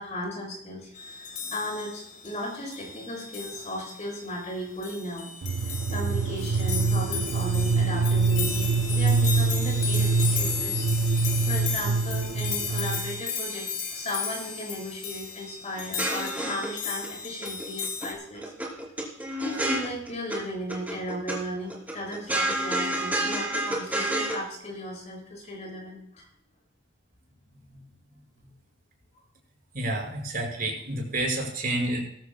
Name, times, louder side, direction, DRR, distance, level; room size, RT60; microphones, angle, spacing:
voice 1, 0.0-5.3 5.6-18.4 19.3-26.3, equal, 35° left, -1 dB, 6.7 m, -36 dB
sound 1, 0.9-18.1, left 6 dB, 55° left, 2.9 m, -35 dB
sound 2, 5.4-13.2, right 4 dB, 60° right, 0.3 m, -25 dB
sound 3, 15.8-17.1 17.4-18.1 18.3-20.4 20.7-21.4 21.7-24.4, right 1 dB, 10° right, 3.0 m, -29 dB
voice 2, 29.7-32.0, right 2 dB, 45° right, -1 dB, 5.2 m, -29 dB
19.5 x 14.5 x 2.2 m, 0.71 s
head